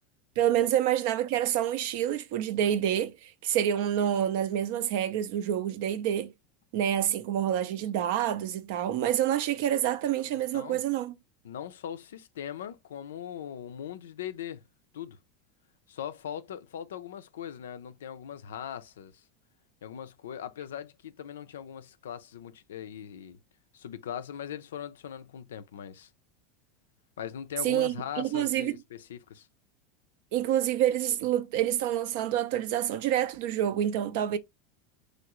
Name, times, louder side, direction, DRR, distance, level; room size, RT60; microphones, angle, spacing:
voice 1, 0.4-6.3 6.7-11.1 27.6-28.8 30.3-34.4, right 11 dB, 70° right, 0.4 m, -27 dB
voice 2, 10.3-10.8 11.4-14.6 14.9-15.2 15.9-19.2 19.8-23.4 23.7-26.1 27.2-29.5, left 9 dB, 85° left, 0.3 m, -40 dB
3.1 x 2.4 x 2.9 m
hypercardioid pair, 95°, 0 cm